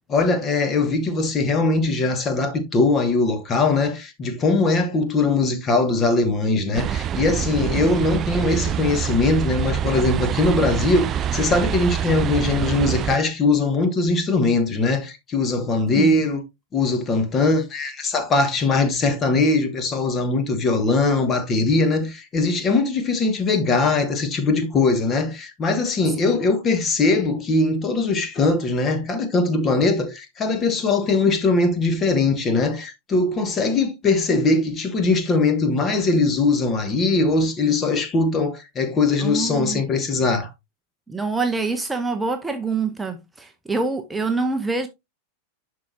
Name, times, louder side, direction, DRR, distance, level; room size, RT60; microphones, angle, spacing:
voice 1, 0.1-16.4 16.7-40.5, left 3 dB, 25° left, 1.4 m, -21 dB
sound 1, 6.7-13.2, right 10 dB, 30° right, 0.3 m, -25 dB
voice 2, 39.2-39.8 41.1-44.9, right 3 dB, 10° right, 0.8 m, -25 dB
11.5 x 4.8 x 2.7 m
figure-of-eight pair, 90°, 0 cm